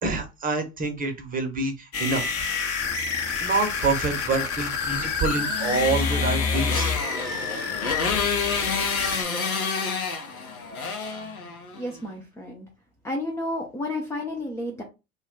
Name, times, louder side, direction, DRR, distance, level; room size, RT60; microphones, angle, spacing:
voice 1, 0.0-2.3 3.4-6.9, right 3 dB, 20° right, 5 dB, 0.7 m, -26 dB
sound 1, 1.9-9.2, left 5 dB, 35° left, 0.8 m, -28 dB
Motorcycle, 5.2-11.9, left 5 dB, 85° left, 0.7 m, -30 dB
voice 2, 11.7-12.7 13.0-14.8, left 1 dB, 5° left, 1 dB, 0.4 m, -31 dB
2.3 x 2.1 x 3.6 m, 0.27 s
figure-of-eight pair, 75°, 42 cm